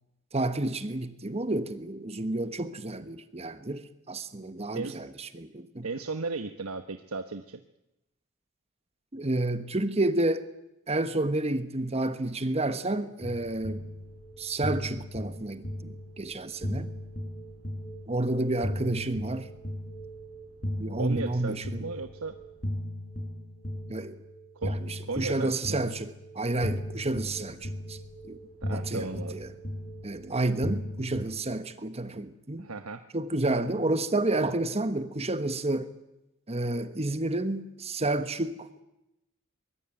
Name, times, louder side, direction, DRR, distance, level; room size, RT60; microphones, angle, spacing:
voice 1, 0.3-5.9 9.1-10.4 10.9-13.8 14.4-16.9 18.1-19.5 20.8-21.8 23.9-24.2 24.6-28.0 28.2-28.4 28.7-29.5 30.0-32.7 33.1-35.9 36.5-38.7, right 2 dB, 30° right, 1.3 m, -30 dB
voice 2, 5.8-7.6 21.0-22.4 24.5-25.9 28.6-29.4 32.6-33.0, right 3 dB, 85° right, 1.1 m, -36 dB
sound 1, 13.2-31.2, equal, 40° left, 5.5 m, -37 dB
23.5 x 21.0 x 9.1 m
head